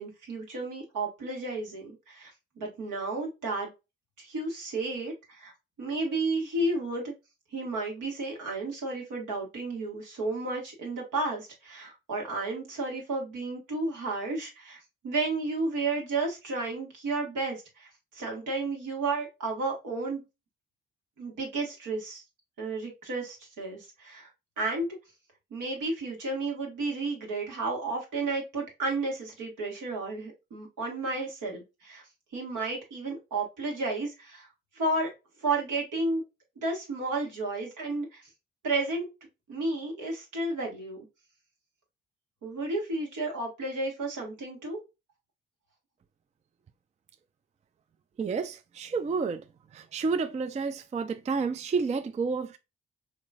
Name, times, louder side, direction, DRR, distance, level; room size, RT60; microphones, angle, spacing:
voice 1, 0.0-2.3 2.6-3.7 4.2-5.5 5.8-7.1 7.5-20.2 21.2-22.2 22.6-24.3 24.6-24.9 25.5-32.0 32.3-34.5 34.7-35.1 35.4-36.2 36.6-38.3 38.6-39.1 39.5-41.1 42.4-44.8, right 2 dB, 70° right, 1.7 m, -32 dB
voice 2, 48.2-49.4 49.7-52.6, right 4 dB, 20° right, 0.4 m, -30 dB
4.1 x 3.0 x 2.4 m
hypercardioid pair, 45°, 32 cm